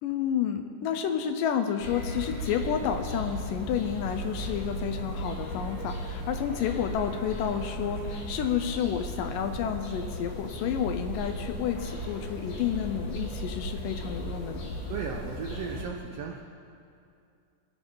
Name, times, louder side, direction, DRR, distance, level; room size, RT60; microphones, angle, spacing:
voice 1, 0.0-14.7, left 8 dB, 80° left, 7 dB, 2.2 m, -30 dB
sound 1, 1.8-15.8, equal, 60° left, 4.2 m, -36 dB
voice 2, 14.9-16.4, right 6 dB, 80° right, 1 dB, 1.4 m, -35 dB
27.5 x 11.0 x 3.9 m, 2.4 s
omnidirectional pair, 4.1 m